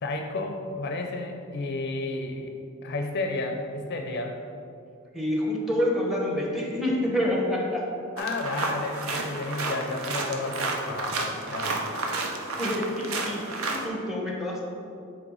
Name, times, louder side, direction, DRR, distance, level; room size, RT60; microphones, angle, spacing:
voice 1, 0.0-2.5 2.8-4.4 8.2-11.8, left 2 dB, 50° left, 3 dB, 0.5 m, -32 dB
voice 2, 5.1-7.9 12.6-14.6, left 1 dB, ahead, -2 dB, 0.8 m, -27 dB
sound 1, 8.2-13.9, right 3 dB, 80° right, 0.7 m, -31 dB
7.9 x 3.2 x 3.9 m, 2.6 s
head